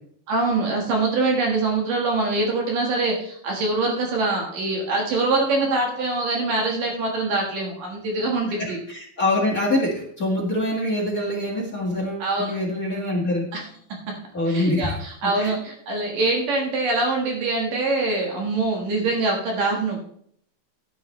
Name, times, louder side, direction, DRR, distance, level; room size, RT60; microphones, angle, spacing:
voice 1, 0.3-8.8 12.2-12.5 13.5-13.6 14.1-14.2 14.5-20.0, right 3 dB, 65° right, 0 dB, 3.1 m, -24 dB
voice 2, 8.9-13.5 14.3-14.9 15.3-15.5, left 1 dB, 35° left, -2 dB, 1.4 m, -24 dB
12.0 x 11.0 x 3.2 m, 0.66 s
omnidirectional pair, 4.4 m